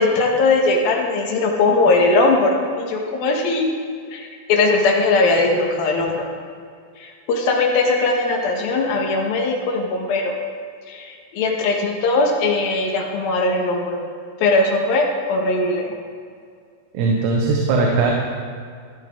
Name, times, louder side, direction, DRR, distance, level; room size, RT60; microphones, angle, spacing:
voice 1, 0.0-3.7 4.1-6.3 7.0-10.4 10.9-14.0 14.4-15.9, left 3 dB, 65° left, 0 dB, 3.1 m, -19 dB
voice 2, 16.9-18.1, right 3 dB, 75° right, -1 dB, 3.3 m, -19 dB
14.5 x 13.5 x 3.8 m, 2.2 s
omnidirectional pair, 4.9 m